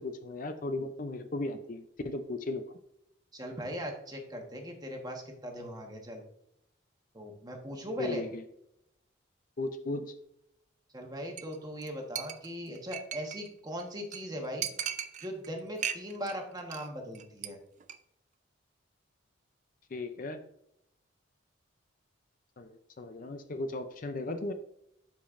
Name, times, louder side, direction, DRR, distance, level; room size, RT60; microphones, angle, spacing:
voice 1, 0.0-2.6 8.0-8.4 9.6-10.1 19.9-20.4 22.6-24.5, left 2 dB, 40° left, 8 dB, 0.5 m, -36 dB
voice 2, 3.3-6.2 7.1-8.2 10.9-14.7 15.2-17.6, equal, 20° right, 2 dB, 1.2 m, -39 dB
Chink clink, 11.4-11.6 11.8-11.9 12.2-13.5 13.8-13.9 14.1-14.2 14.6-15.5 15.8-16.3 16.6-16.9 17.1-17.5 17.8-17.9, right 9 dB, 40° right, 0.4 m, -37 dB
12.0 x 5.1 x 2.5 m, 0.79 s
head